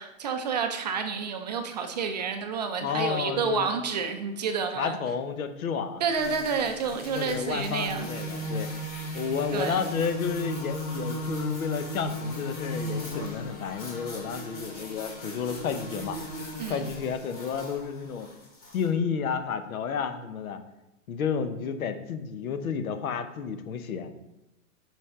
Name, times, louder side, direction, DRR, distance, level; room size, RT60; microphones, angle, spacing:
voice 1, 0.0-5.0 6.0-8.1 9.5-9.8 16.6-16.8, right 5 dB, 35° right, 6 dB, 0.4 m, -29 dB
voice 2, 2.8-3.7 4.8-6.0 7.2-8.7 9.1-16.2 16.7-18.3 18.7-20.6 21.1-24.1, left 6 dB, 80° left, 9 dB, 1.0 m, -31 dB
sound 1, 6.1-18.9, equal, 20° left, 2.3 m, -36 dB
5.6 x 5.3 x 3.6 m, 0.99 s
hypercardioid pair, 155°, 42 cm